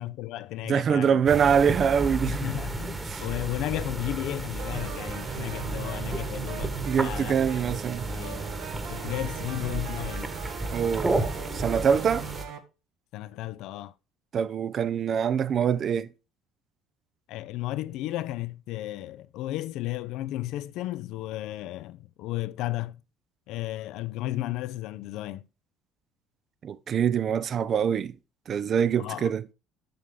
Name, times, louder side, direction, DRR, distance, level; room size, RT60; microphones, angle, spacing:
voice 1, 0.0-1.2 2.3-7.4 8.0-8.4 8.9-10.3 13.1-13.9 17.3-23.0 23.5-25.4 29.0-29.3, left 15 dB, 65° left, 0.5 m, -34 dB
voice 2, 0.7-2.5 3.1-3.3 6.8-8.1 10.7-11.2 11.5-12.3 14.3-16.1 26.6-28.1 28.5-29.4, right 7 dB, 45° right, 0.6 m, -24 dB
sound 1, 1.2-12.4, right 2 dB, 20° right, 1.5 m, -33 dB
sound 2, 4.6-12.6, right 8 dB, 65° right, 1.2 m, -39 dB
7.8 x 6.6 x 3.8 m
hypercardioid pair, 60°, 0 cm